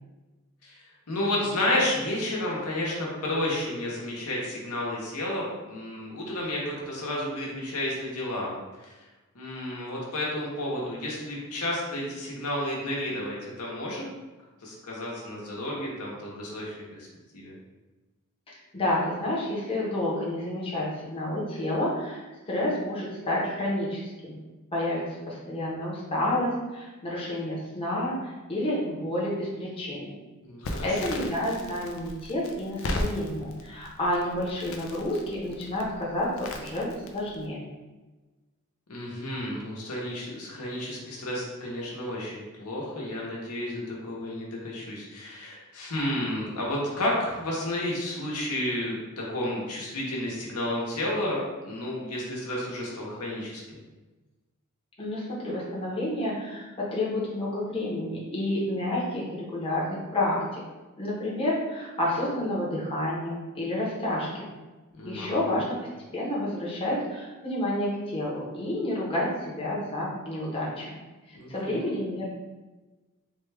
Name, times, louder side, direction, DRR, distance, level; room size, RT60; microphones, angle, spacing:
voice 1, 1.1-8.9 9.3-14.1 14.6-17.1 17.3-17.5 30.4-31.0 38.9-53.6 64.9-65.5 71.3-71.8, left 1 dB, 85° left, -4 dB, 0.9 m, -31 dB
voice 2, 18.7-24.4 24.7-30.1 30.8-37.7 55.0-60.6 61.0-64.5 65.0-65.8 66.1-71.0 71.3-72.3, left 1 dB, 25° left, -6 dB, 0.8 m, -30 dB
Crackle, 30.6-37.5, left 1 dB, 65° left, 0.4 m, -37 dB
3.5 x 2.3 x 3.3 m, 1.2 s
head